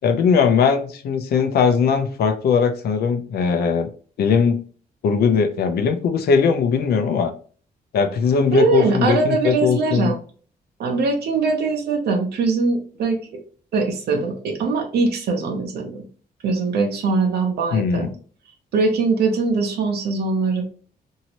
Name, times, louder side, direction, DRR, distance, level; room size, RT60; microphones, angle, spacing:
voice 1, 0.0-3.9 4.2-4.6 5.0-7.3 7.9-10.1 17.7-18.1, left 6 dB, 75° left, 8 dB, 0.6 m, -19 dB
voice 2, 8.5-10.2 10.8-13.2 13.7-16.1 16.4-18.1 18.7-20.7, right 4 dB, 80° right, 2 dB, 0.8 m, -21 dB
3.0 x 2.8 x 2.8 m, 0.42 s
wide cardioid pair, 170°, 16 cm